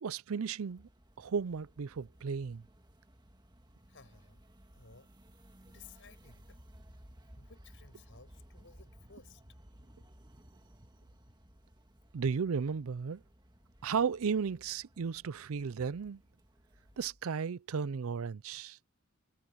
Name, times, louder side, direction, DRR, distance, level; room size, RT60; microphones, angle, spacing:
voice 1, 0.0-0.9 1.2-2.6 12.1-13.2 13.8-16.2 17.0-18.8, right 6 dB, 70° right, 0.5 m, -34 dB
sound 1, 0.7-17.0, equal, 20° right, 1.8 m, -59 dB
voice 2, 3.9-5.1 5.7-6.6 7.4-9.4, left 5 dB, 60° left, 6.9 m, -58 dB
head